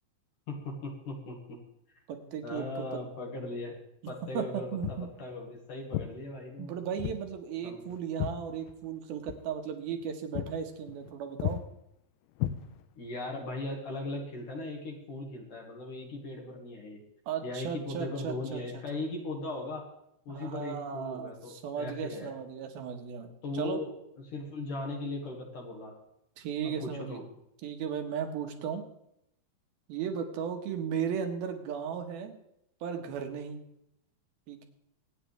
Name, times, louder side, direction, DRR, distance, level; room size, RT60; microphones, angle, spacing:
voice 1, 0.5-1.6 2.4-3.8 4.1-6.7 7.6-7.8 13.0-17.0 17.4-19.9 20.3-22.3 23.4-23.9 24.3-25.9 26.6-27.2, left 2 dB, 60° left, -1 dB, 3.3 m, -38 dB
voice 2, 2.1-3.0 4.3-4.5 4.7-5.1 6.6-11.6 17.3-18.8 20.3-23.8 26.4-27.2 27.6-28.8 29.9-32.3 32.8-33.6 34.5-34.6, right 7 dB, 75° right, 5 dB, 3.2 m, -36 dB
Walk footsteps, 4.8-5.1 5.9-6.1 7.0-7.2 7.5-9.0 9.3-9.5 9.9-10.0 10.3-10.6 10.9-11.1 11.4-11.6 12.4-13.1, left 12 dB, 85° left, 2.6 m, -34 dB
25.0 x 9.2 x 3.4 m, 0.79 s
omnidirectional pair, 4.4 m